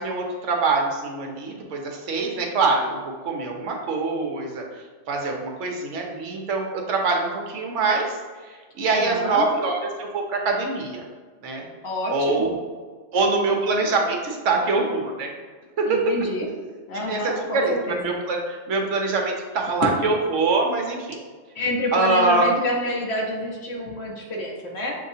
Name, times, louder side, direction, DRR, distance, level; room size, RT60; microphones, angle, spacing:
voice 1, 0.0-4.6 5.1-8.2 8.5-11.0 11.4-11.6 12.1-12.5 13.1-15.3 15.8-16.0 16.9-21.2 21.9-22.5, right 3 dB, 70° right, 1 dB, 1.1 m, -24 dB
voice 2, 8.8-9.5 11.8-12.5 15.9-16.5 16.9-18.0 21.5-25.0, left 1 dB, 55° left, -2 dB, 1.1 m, -28 dB
6.5 x 2.8 x 2.7 m, 1.5 s
omnidirectional pair, 1.4 m